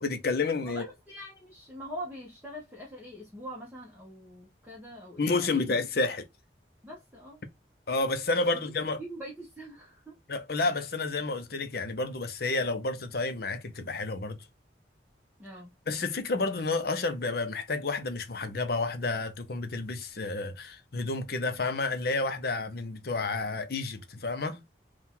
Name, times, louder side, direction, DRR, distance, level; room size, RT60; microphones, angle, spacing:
voice 1, 0.0-0.9 5.2-6.3 7.9-9.0 10.3-14.4 15.9-24.6, left 3 dB, 60° left, 0.7 m, -30 dB
voice 2, 0.6-5.7 6.8-7.4 8.6-8.7 9.0-10.1 15.4-15.7, equal, 10° right, 1.1 m, -43 dB
4.4 x 2.4 x 3.7 m
head